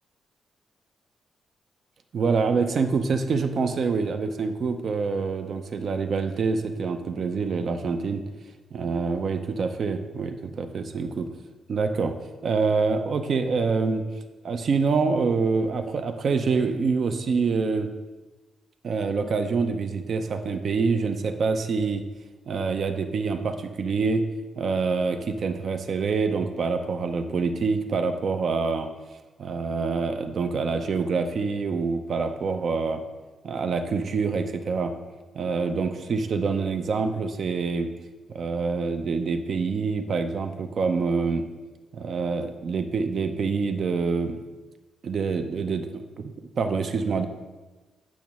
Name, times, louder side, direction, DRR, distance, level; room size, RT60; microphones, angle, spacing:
voice 1, 2.1-8.2 8.7-11.3 11.7-12.1 12.4-14.0 14.4-17.9 18.8-22.0 22.5-24.2 24.6-28.9 29.4-33.0 33.4-34.9 35.3-37.9 38.3-41.5 41.9-44.4 45.0-47.3, right 4 dB, 50° right, 7 dB, 0.6 m, -26 dB
8.6 x 3.1 x 6.0 m, 1.2 s
wide cardioid pair, 150°, 0 cm